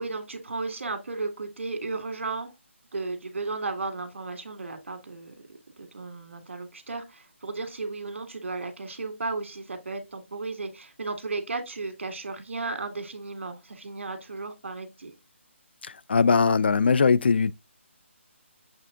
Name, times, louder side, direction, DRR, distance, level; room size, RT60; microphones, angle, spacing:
voice 1, 0.0-2.5 2.9-5.3 5.8-15.1, right 3 dB, 65° right, 1.9 m, -34 dB
voice 2, 15.8-17.5, left 5 dB, 55° left, 0.4 m, -21 dB
7.8 x 3.5 x 3.6 m
hypercardioid pair, 170°, 7 cm